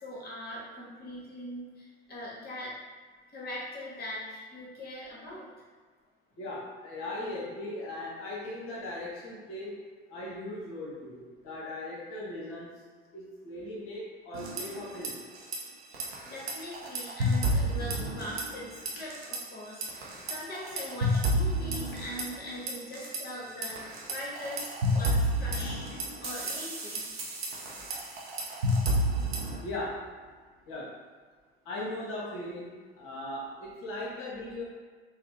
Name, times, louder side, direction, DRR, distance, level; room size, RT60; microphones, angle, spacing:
voice 1, 0.0-2.8 3.3-5.6 16.2-27.1, left 1 dB, 30° left, -5 dB, 1.3 m, -41 dB
voice 2, 6.4-9.8 10.1-12.7 13.1-15.2 19.0-19.1 29.6-30.1 30.7-31.0 31.6-34.6, left 1 dB, 45° left, -5 dB, 1.2 m, -38 dB
sound 1, 14.3-15.1 15.4-15.6 15.9-18.6 18.9-19.4 19.8-23.2 23.6-29.6, right 1 dB, 80° right, 0.6 m, -30 dB
3.9 x 2.1 x 3.0 m, 1.5 s
figure-of-eight pair, 60°, 30 cm